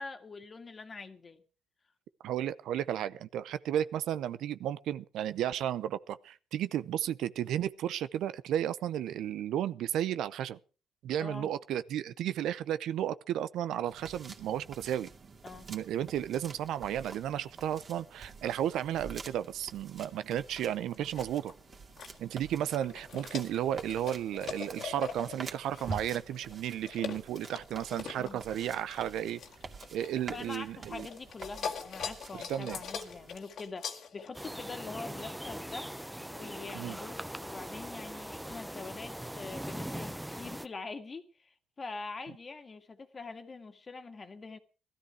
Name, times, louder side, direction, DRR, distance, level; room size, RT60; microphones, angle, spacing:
voice 1, 0.0-1.4 11.2-11.5 15.4-15.7 28.2-28.4 30.3-35.9 36.3-44.6, left 4 dB, 35° left, 1.9 m, -44 dB
voice 2, 2.2-10.6 11.0-15.1 15.7-21.5 22.2-29.4 29.9-31.1 32.5-32.8 36.7-37.0, right 11 dB, 80° right, 0.7 m, -33 dB
sound 1, 13.9-33.4, right 3 dB, 40° right, 2.4 m, -48 dB
sound 2, 20.9-22.2 22.7-30.6 30.9-34.4, left 7 dB, 70° left, 1.9 m, -42 dB
sound 3, 34.3-40.7, equal, 5° right, 0.8 m, -41 dB
17.0 x 13.0 x 4.8 m
cardioid pair, 90°, 0 cm